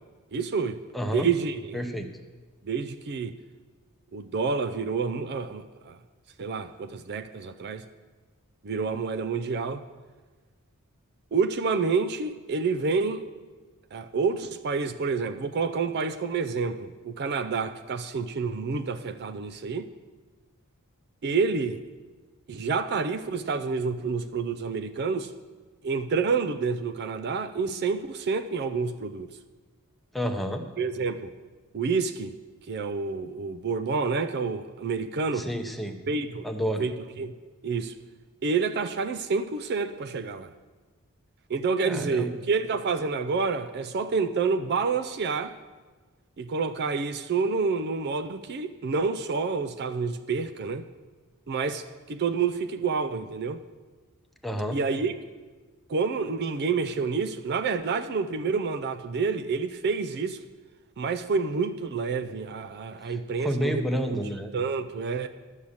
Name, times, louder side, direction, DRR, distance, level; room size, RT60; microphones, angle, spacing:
voice 1, 0.3-0.8 1.1-1.8 2.7-3.4 4.1-6.0 6.4-7.8 8.6-9.8 11.3-13.2 13.9-19.9 21.2-21.8 22.5-25.3 25.8-29.3 30.8-31.3 31.7-32.4 32.7-35.5 36.1-36.5 36.8-37.3 37.6-37.9 38.4-40.5 41.5-45.5 46.4-50.9 51.5-53.6 54.7-55.1 55.9-60.4 61.0-63.8 64.1-64.2 64.5-65.3, right 4 dB, 50° right, 0.4 m, -28 dB
voice 2, 0.9-1.3 1.7-2.1 30.1-30.6 35.3-36.0 36.4-36.8 41.8-42.3 54.4-54.8 63.0-64.5, equal, ahead, 0.7 m, -30 dB
11.5 x 6.5 x 7.1 m
head